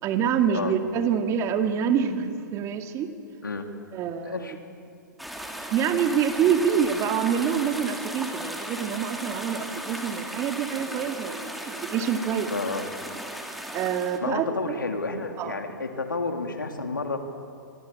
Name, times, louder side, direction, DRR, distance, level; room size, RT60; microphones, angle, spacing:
voice 1, 0.0-3.1 3.9-4.6 5.7-12.7 13.7-14.8 15.4-15.6, right 7 dB, 30° right, 6 dB, 2.1 m, -26 dB
voice 2, 4.2-4.6 12.5-12.8 14.2-17.2, left 3 dB, 85° left, 5 dB, 3.2 m, -30 dB
sound 1, 5.2-14.2, right 1 dB, ahead, 2.9 m, -36 dB
27.0 x 23.0 x 8.7 m, 2.4 s
figure-of-eight pair, 115°, 11 cm